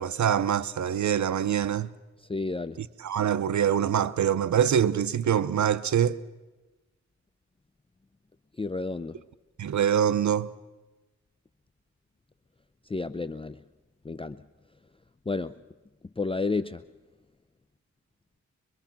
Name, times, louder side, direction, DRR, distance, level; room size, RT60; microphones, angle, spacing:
voice 1, 0.0-1.9 3.0-6.2 9.6-10.5, right 9 dB, 75° right, 0.7 m, -24 dB
voice 2, 2.2-2.9 8.6-9.2 12.8-13.6 14.0-14.4 15.3-15.5 16.2-16.8, left 3 dB, 20° left, 0.6 m, -31 dB
24.5 x 23.0 x 5.9 m
cardioid pair, 70°, 29 cm